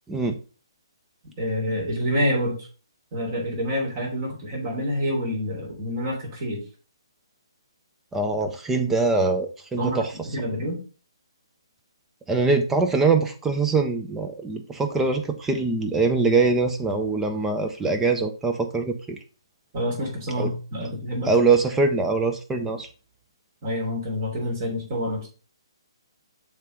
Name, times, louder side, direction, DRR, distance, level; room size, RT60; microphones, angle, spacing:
voice 1, 1.4-2.7 3.1-6.6 9.8-10.0 10.3-10.8 19.7-21.3 23.6-25.3, equal, 35° right, 0 dB, 3.3 m, -27 dB
voice 2, 8.1-10.1 12.3-19.2 20.4-20.5 21.3-22.9, right 3 dB, 10° right, 5 dB, 0.8 m, -23 dB
7.4 x 3.6 x 5.1 m, 0.37 s
figure-of-eight pair, 140°, 3 cm